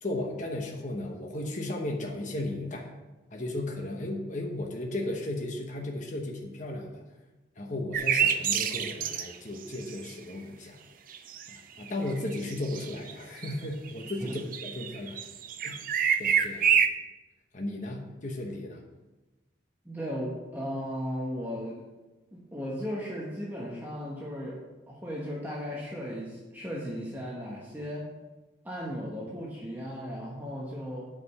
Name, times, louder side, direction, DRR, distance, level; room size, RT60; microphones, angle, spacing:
voice 1, 0.0-2.9 3.3-7.0 7.6-10.8 11.5-15.2 15.6-15.8 16.2-16.8 17.5-18.8, left 1 dB, 40° left, 1 dB, 1.0 m, -35 dB
sound 1, 7.9-9.3 9.9-10.0 11.1-11.6 11.9-13.1 13.4-13.5 13.9-16.9, right 7 dB, 45° right, 0.5 m, -27 dB
voice 2, 19.8-21.9 22.3-28.1 28.6-31.1, equal, 10° right, -4 dB, 1.2 m, -36 dB
8.3 x 5.1 x 6.7 m, 1.1 s
head